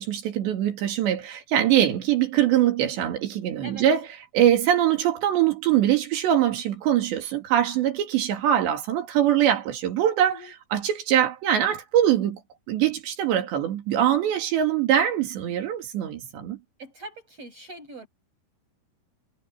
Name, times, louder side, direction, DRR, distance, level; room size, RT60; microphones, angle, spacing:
voice 1, 0.0-4.1 4.3-10.4 10.7-12.4 12.7-16.6, right 11 dB, 90° right, 4.8 m, -23 dB
voice 2, 16.8-18.1, right 1 dB, 35° right, 7.7 m, -42 dB
omnidirectional pair, 4.9 m